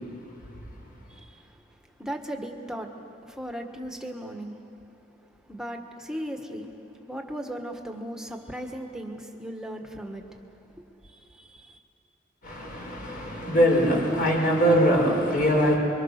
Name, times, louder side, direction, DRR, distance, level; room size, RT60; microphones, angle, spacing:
voice 1, 2.0-2.9 3.3-4.5 5.5-6.7 7.1-10.2 11.4-11.7, equal, 5° right, 3 dB, 1.7 m, -36 dB
voice 2, 12.4-15.8, equal, 50° left, -1 dB, 5.8 m, -22 dB
29.5 x 23.5 x 6.7 m, 2.7 s
head